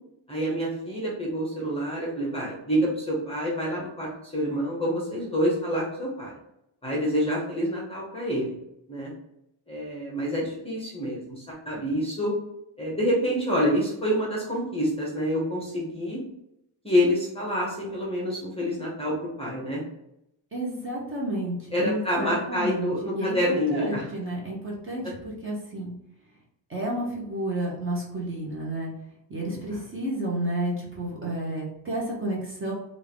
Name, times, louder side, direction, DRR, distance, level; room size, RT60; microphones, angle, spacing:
voice 1, 0.3-6.3 6.8-8.5 8.9-9.1 9.7-12.3 12.8-16.2 16.8-19.8 21.7-24.0 29.5-29.8, equal, 10° left, -4 dB, 0.7 m, -27 dB
voice 2, 20.5-25.9 26.7-28.9 29.3-32.7, right 1 dB, 25° right, -3 dB, 0.8 m, -31 dB
3.5 x 2.5 x 3.4 m, 0.83 s
wide cardioid pair, 175°, 50 cm